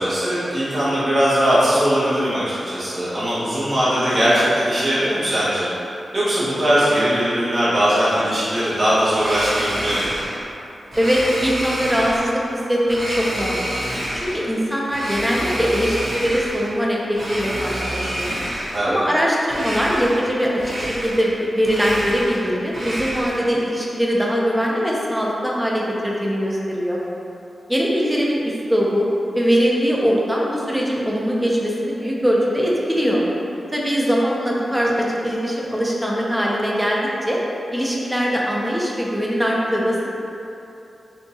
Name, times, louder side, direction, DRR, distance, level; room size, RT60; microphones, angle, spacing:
voice 1, 0.0-5.7 6.1-10.1 18.7-19.0, equal, 40° right, -11 dB, 1.3 m, -20 dB
Domestic sounds home sounds, 9.1-10.4 10.9-12.3 12.9-14.4 14.9-16.7 17.1-18.9 19.5-20.3 20.6-21.3 21.6-23.5, equal, 70° right, 1.5 m, -28 dB
voice 2, 11.0-13.7 14.1-18.3 18.8-27.0 27.7-29.1 29.3-33.2 33.7-37.4 37.7-40.2, equal, 5° right, -4 dB, 0.5 m, -21 dB
4.5 x 2.8 x 2.7 m, 2.8 s
wide cardioid pair, 180°, 0 cm